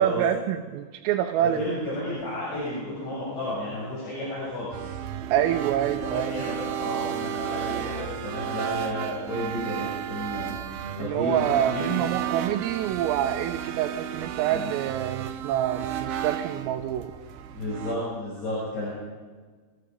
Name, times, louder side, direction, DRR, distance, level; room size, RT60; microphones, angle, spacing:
voice 1, 0.0-1.6 5.3-6.5 11.0-17.1, right 11 dB, 90° right, 3 dB, 3.7 m, -26 dB
voice 2, 1.6-4.9 5.9-10.7 11.0-11.3 11.7-11.8 14.5-14.7 17.5-18.9, left 1 dB, 60° left, -7 dB, 9.6 m, -32 dB
sound 1, 4.7-18.0, right 10 dB, 75° right, 2.3 m, -33 dB
28.5 x 21.5 x 5.4 m, 1.5 s
omnidirectional pair, 5.8 m